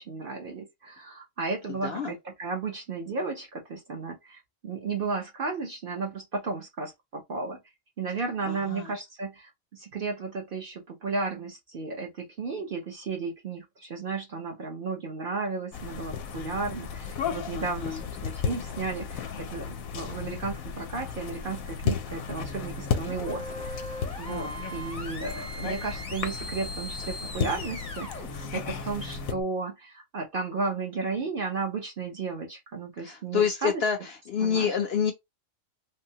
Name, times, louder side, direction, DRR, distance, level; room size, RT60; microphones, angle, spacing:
voice 1, 0.0-7.6 8.0-23.8 24.2-33.8 34.4-34.8, right 4 dB, 50° right, 0.7 m, -34 dB
voice 2, 1.8-2.1 8.5-8.9 17.5-18.0 24.3-24.6 33.0-35.1, left 7 dB, 65° left, 0.7 m, -28 dB
sound 1, 15.7-29.3, left 7 dB, 85° left, 1.0 m, -34 dB
sound 2, 22.3-29.4, equal, 5° left, 0.5 m, -41 dB
3.4 x 2.0 x 2.7 m
omnidirectional pair, 1.4 m